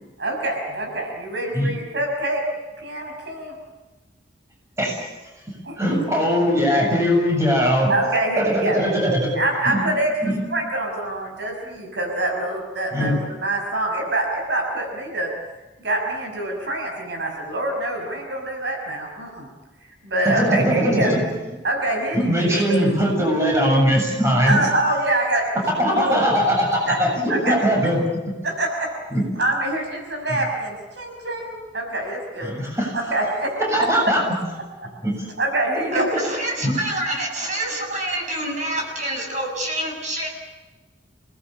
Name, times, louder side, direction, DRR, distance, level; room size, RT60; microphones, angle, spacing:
voice 1, 0.2-2.4 2.8-3.6 5.6-5.8 7.9-8.8 9.3-10.1 10.5-15.3 15.8-19.5 20.0-21.1 21.6-22.9 24.5-25.5 26.0-26.2 26.8-27.0 27.3-27.6 27.8-27.9 28.4-28.9 29.4-33.5 33.8-34.1 35.4-36.1, right 1 dB, 65° right, 2 dB, 6.0 m, -25 dB
voice 2, 5.8-7.9 8.4-9.3 9.7-9.8 10.2-10.4 12.9-13.1 20.3-21.2 22.1-24.6 25.8-28.0 29.1-29.2 32.4-32.9 33.7-34.2 35.0-35.3 35.9-36.0 36.6-36.7, equal, 15° right, -1 dB, 7.4 m, -20 dB
voice 3, 35.9-40.3, right 1 dB, 40° right, 1 dB, 7.7 m, -27 dB
28.0 x 19.5 x 8.6 m, 1.2 s
head